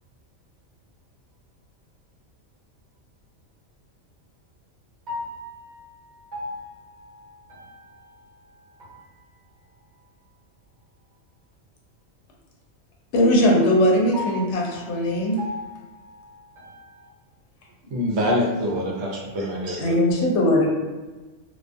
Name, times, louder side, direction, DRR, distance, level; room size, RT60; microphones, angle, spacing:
voice 1, 5.1-5.9 6.3-7.2 7.5-7.6 8.8-8.9 14.1-14.4 15.4-16.3 16.6-16.7, left 2 dB, 40° right, -9 dB, 1.0 m, -36 dB
voice 2, 13.1-15.4 19.8-20.7, left 1 dB, 70° left, -1 dB, 0.9 m, -19 dB
voice 3, 17.9-19.9, left 1 dB, 65° right, -2 dB, 0.8 m, -25 dB
2.3 x 2.3 x 2.5 m, 1.2 s
omnidirectional pair, 1.3 m